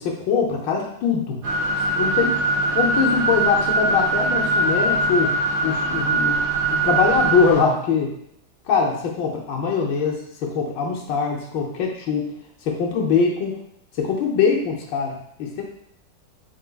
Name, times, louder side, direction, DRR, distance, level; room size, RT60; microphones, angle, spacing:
voice 1, 0.0-1.4 1.9-2.3 2.7-5.4 5.6-8.1 8.7-12.3 12.6-13.6 14.0-15.6, left 5 dB, 80° left, -1 dB, 1.4 m, -22 dB
sound 1, 1.4-7.6, right 2 dB, 80° right, 1.5 m, -22 dB
4.6 x 3.9 x 2.3 m, 0.69 s
omnidirectional pair, 2.0 m